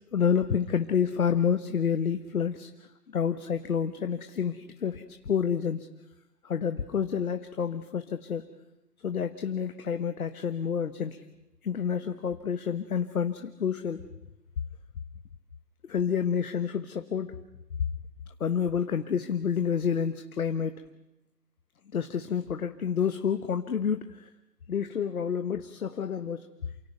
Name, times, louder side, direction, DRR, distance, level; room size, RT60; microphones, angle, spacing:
voice 1, 0.1-2.7 3.1-5.9 6.4-8.4 9.0-11.2 11.6-14.0 15.9-17.3 18.4-20.8 21.9-24.3 24.7-26.4, left 7 dB, 60° left, 8 dB, 1.4 m, -29 dB
28.5 x 17.0 x 9.4 m, 0.91 s
figure-of-eight pair, 145°, 49 cm